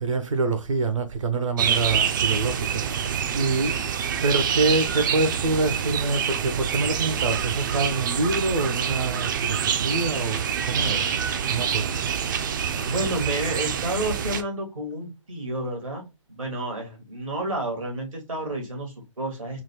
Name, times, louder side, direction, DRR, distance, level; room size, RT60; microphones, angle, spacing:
voice 1, 0.0-2.8 3.3-3.8 4.2-11.1 11.5-11.9, right 3 dB, 70° right, 0.8 m, -26 dB
sound 1, 1.6-14.4, right 8 dB, 40° right, 0.4 m, -26 dB
voice 2, 12.8-19.6, right 1 dB, 85° right, 1.8 m, -30 dB
4.0 x 2.2 x 2.9 m
figure-of-eight pair, 135°, 17 cm